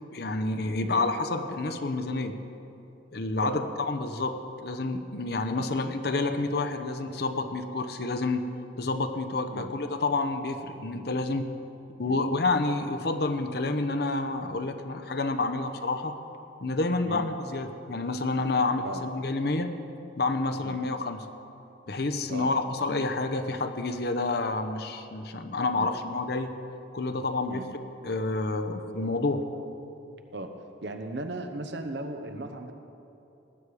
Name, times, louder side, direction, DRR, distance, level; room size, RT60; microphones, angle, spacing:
voice 1, 0.1-2.4 3.1-8.4 8.8-11.5 12.0-16.1 16.6-19.7 20.2-21.3 21.9-26.5 26.9-27.7 28.0-29.5, left 3 dB, 55° left, 8 dB, 0.7 m, -29 dB
voice 2, 30.8-32.7, right 2 dB, 65° right, 6 dB, 1.0 m, -36 dB
19.0 x 8.8 x 4.8 m, 2.8 s
head